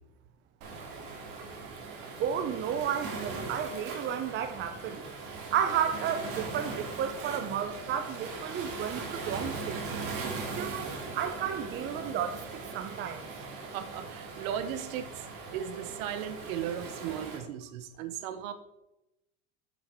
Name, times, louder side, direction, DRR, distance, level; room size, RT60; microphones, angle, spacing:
Waves surf, 0.6-17.4, right 4 dB, 55° right, 2.4 m, -40 dB
voice 1, 2.2-5.0 5.5-10.0 10.5-13.3, right 8 dB, 25° right, 0.6 m, -32 dB
voice 2, 13.7-15.3 15.5-18.5, right 9 dB, 80° right, 1.0 m, -36 dB
7.3 x 6.4 x 4.5 m
supercardioid pair, 140°, 41 cm